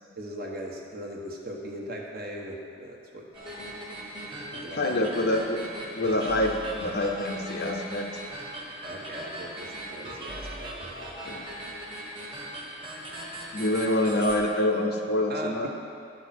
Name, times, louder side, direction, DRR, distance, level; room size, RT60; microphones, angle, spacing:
voice 1, 0.2-3.3 4.5-5.4 8.8-11.1 15.3-15.7, equal, 45° right, -1 dB, 1.2 m, -39 dB
sound 1, 3.3-14.4, right 1 dB, 25° right, 1.4 m, -39 dB
voice 2, 4.7-5.6 6.0-8.2 11.3-11.4 13.5-15.7, left 1 dB, 50° left, 2 dB, 0.8 m, -26 dB
11.5 x 5.1 x 5.9 m, 2.4 s
head